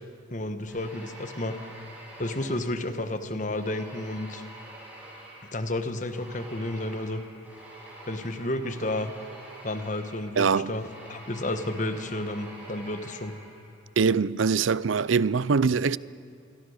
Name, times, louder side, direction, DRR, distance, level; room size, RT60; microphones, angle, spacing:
voice 1, 0.3-1.6 2.2-4.4 5.5-7.2 8.1-9.1 9.6-13.4, left 1 dB, 40° left, 1.3 m, -31 dB
sound 1, 0.7-3.1 3.5-13.8, right 1 dB, 10° right, 6.3 m, -47 dB
voice 2, 10.4-10.8 14.0-16.0, right 5 dB, 80° right, 0.5 m, -23 dB
27.0 x 22.5 x 6.6 m
head